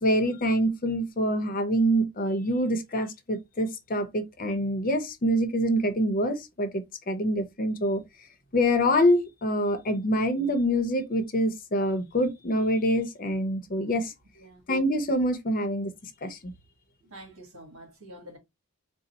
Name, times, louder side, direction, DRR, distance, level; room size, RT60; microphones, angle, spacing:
voice 1, 0.0-8.0 8.5-14.1 14.7-15.9 16.2-16.5, equal, 40° left, 0.6 m, -25 dB
voice 2, 17.0-18.4, equal, 60° right, 1.6 m, -47 dB
3.9 x 2.0 x 4.2 m
head